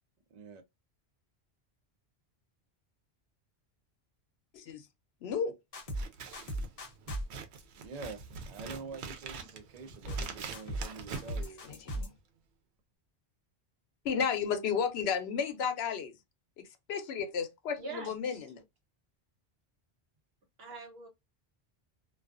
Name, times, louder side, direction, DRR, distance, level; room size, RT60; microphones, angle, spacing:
voice 1, 0.3-0.6 7.8-11.7, right 4 dB, 50° right, 0.5 m, -46 dB
voice 2, 4.5-4.8 5.2-5.5 11.6-12.1 14.0-16.1 16.6-18.6, left 6 dB, 80° left, 0.8 m, -33 dB
sound 1, 5.7-6.0 6.3-7.2 10.1-10.3 10.5-10.9 11.1-12.1, right 1 dB, 40° left, 0.6 m, -36 dB
Scissors, 5.9-12.1, right 5 dB, 85° right, 0.9 m, -44 dB
voice 3, 17.8-18.4 20.6-21.1, right 3 dB, 70° right, 1.1 m, -43 dB
2.3 x 2.3 x 2.4 m
omnidirectional pair, 1.1 m